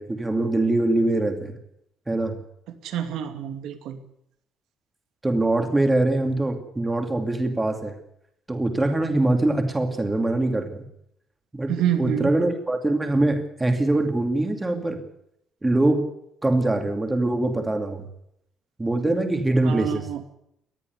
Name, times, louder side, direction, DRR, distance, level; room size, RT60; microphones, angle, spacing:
voice 1, 0.0-1.5 2.1-2.4 5.2-7.9 8.5-10.8 11.5-15.0 15.6-16.0 16.4-18.0 18.8-20.1, right 2 dB, 10° right, 5 dB, 2.6 m, -23 dB
voice 2, 2.8-4.0 11.7-12.3 19.6-20.2, right 10 dB, 75° right, 6 dB, 2.5 m, -27 dB
20.0 x 13.5 x 9.5 m, 0.76 s
cardioid pair, 180°, 0 cm